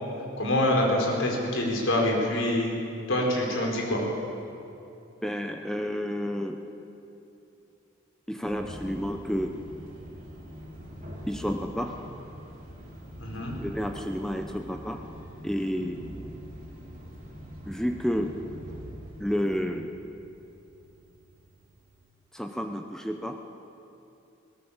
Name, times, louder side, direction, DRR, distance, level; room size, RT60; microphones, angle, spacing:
voice 1, 0.4-2.7 3.1-4.0 13.2-13.5, left 1 dB, 85° left, 0 dB, 4.4 m, -25 dB
voice 2, 5.2-6.6 8.3-9.5 11.3-11.9 13.6-15.0 15.4-16.0 17.7-18.4 19.2-19.9 22.3-23.4, equal, 5° left, 4 dB, 0.8 m, -30 dB
sound 1, 8.5-22.1, equal, 40° right, 4.4 m, -44 dB
21.5 x 17.5 x 7.3 m, 2.8 s
head